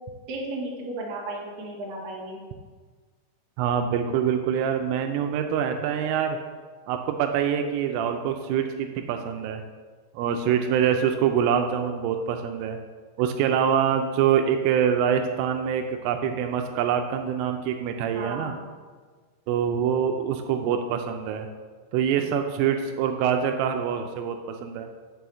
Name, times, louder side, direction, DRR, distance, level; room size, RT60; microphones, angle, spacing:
voice 1, 0.3-2.4 18.1-18.7, right 2 dB, 55° right, -5 dB, 2.3 m, -34 dB
voice 2, 3.6-6.4 6.9-9.6 10.1-12.8 13.2-18.5 19.5-21.5 21.9-24.9, right 8 dB, 85° right, 5 dB, 3.1 m, -25 dB
6.3 x 6.1 x 6.9 m, 1.5 s
omnidirectional pair, 5.7 m